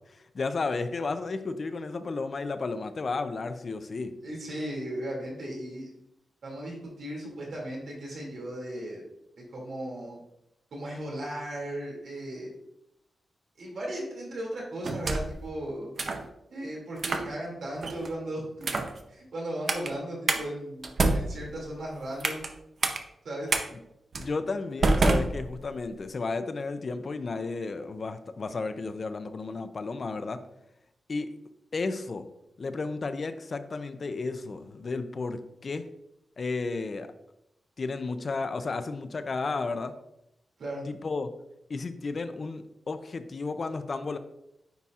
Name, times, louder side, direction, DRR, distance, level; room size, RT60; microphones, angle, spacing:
voice 1, 0.3-4.1 24.2-30.4 31.1-31.3 31.7-32.3 32.6-35.8 36.4-37.1 37.8-39.9 40.9-41.3 41.7-44.2, left 3 dB, 40° left, 10 dB, 0.4 m, -33 dB
voice 2, 4.2-5.9 6.4-9.0 9.4-10.2 10.7-12.5 13.6-15.9 16.5-18.7 19.1-22.4 23.2-23.5 40.6-40.9, right 1 dB, 70° right, -3 dB, 2.3 m, -36 dB
sound 1, 14.8-15.4 16.0-16.3 17.0-17.3 17.8-18.1 18.6-19.0 19.7-19.9 20.3-20.4 20.8-22.5 22.8-23.0 23.5-23.6 24.1-24.3 24.8-25.9, right 3 dB, 45° right, 0.6 m, -27 dB
9.3 x 4.2 x 2.4 m, 0.82 s
wide cardioid pair, 160°, 0 cm